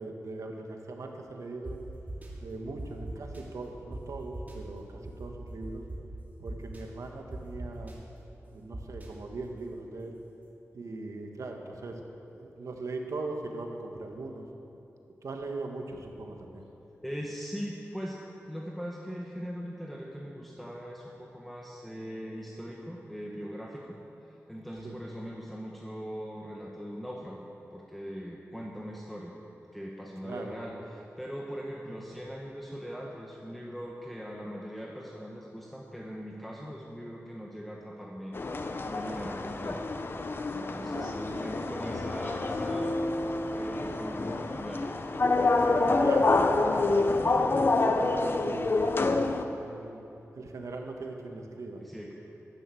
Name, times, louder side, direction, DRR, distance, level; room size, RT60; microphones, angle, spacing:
voice 1, 0.0-1.8 2.4-5.8 6.4-7.9 8.5-10.1 10.7-12.0 12.3-14.5 15.2-16.7 24.8-25.0 30.2-30.6 40.7-41.2 45.7-51.8, right 3 dB, 80° right, 3 dB, 1.6 m, -40 dB
sound 1, 1.6-1.7 2.1-2.3 2.8-3.4 3.9-4.0 4.3-4.5 5.0-6.0 6.5-6.8 7.3-7.9 8.7-9.1, right 1 dB, 30° right, 2.7 m, -39 dB
voice 2, 17.0-24.0 24.5-27.4 27.7-29.3 29.7-38.3 38.8-39.9 40.5-42.9 43.2-44.9 51.8-52.1, equal, ahead, -2 dB, 1.3 m, -40 dB
sound 2, 38.3-49.4, left 3 dB, 45° left, 0.8 m, -27 dB
12.5 x 10.5 x 7.8 m, 3.0 s
wide cardioid pair, 85°, 5 cm